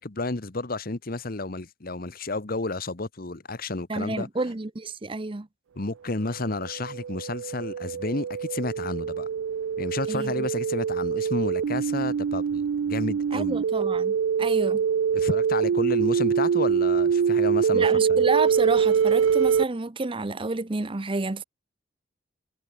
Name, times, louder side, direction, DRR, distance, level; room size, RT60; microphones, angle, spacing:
voice 1, 0.0-4.3 5.8-9.3 9.8-13.6 15.1-18.2, left 2 dB, 50° left, 1.2 m, -31 dB
voice 2, 3.9-5.5 10.1-10.5 13.3-14.8 17.7-21.4, right 3 dB, 25° right, 0.7 m, -30 dB
sound 1, 6.4-19.6, right 7 dB, 80° right, 0.4 m, -24 dB
head